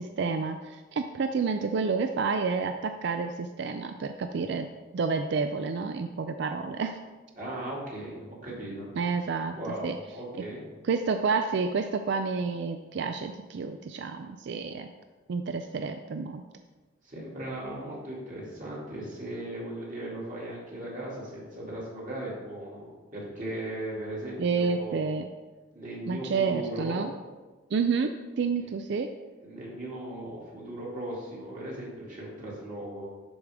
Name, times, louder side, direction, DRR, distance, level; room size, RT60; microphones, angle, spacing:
voice 1, 0.0-4.7 4.9-7.0 9.0-10.0 10.9-14.9 15.3-16.4 24.4-25.3 26.1-27.1 27.7-29.1, right 5 dB, 55° right, 7 dB, 0.3 m, -29 dB
voice 2, 7.4-8.9 9.5-10.7 17.0-25.0 25.7-27.0 29.4-33.1, right 1 dB, 35° right, -5 dB, 2.4 m, -37 dB
11.5 x 4.8 x 3.5 m, 1.3 s
head